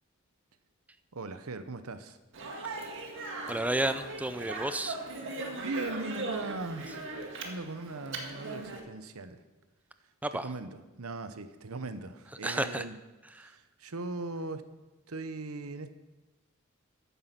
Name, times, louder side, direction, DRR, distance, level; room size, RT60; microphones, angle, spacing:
voice 1, 1.1-2.2 5.6-7.0 7.4-9.4 10.3-13.0 13.3-14.7 15.1-15.9, right 3 dB, 80° right, 11 dB, 0.9 m, -39 dB
Speech, 2.3-8.8, right 2 dB, 60° right, 1.9 m, -39 dB
voice 2, 3.5-5.0 10.2-10.5 12.4-12.8 13.4-13.5, right 1 dB, 5° right, 10 dB, 0.5 m, -31 dB
14.0 x 9.5 x 5.9 m, 1.1 s
head